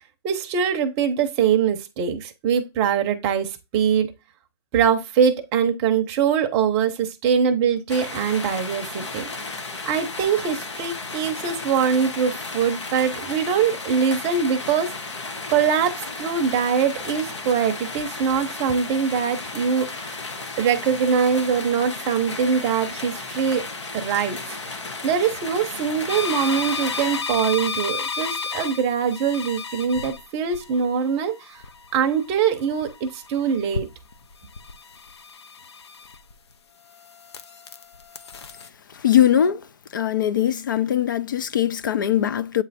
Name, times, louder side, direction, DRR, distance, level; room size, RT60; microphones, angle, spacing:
voice 1, 0.2-4.1 4.7-9.3 9.8-14.9 15.5-20.2 20.6-23.7 23.9-24.8 25.0-31.6 31.9-33.9, right 7 dB, 20° right, 0.7 m, -23 dB
sound 1, 7.9-27.2, left 3 dB, 85° left, 1.5 m, -34 dB
sound 2, 26.1-36.5 36.9-38.7, left 5 dB, 70° left, 0.9 m, -34 dB
voice 2, 38.9-39.6 39.9-42.6, left 10 dB, 45° left, 0.4 m, -21 dB
8.4 x 3.2 x 4.2 m
hypercardioid pair, 160°, 15 cm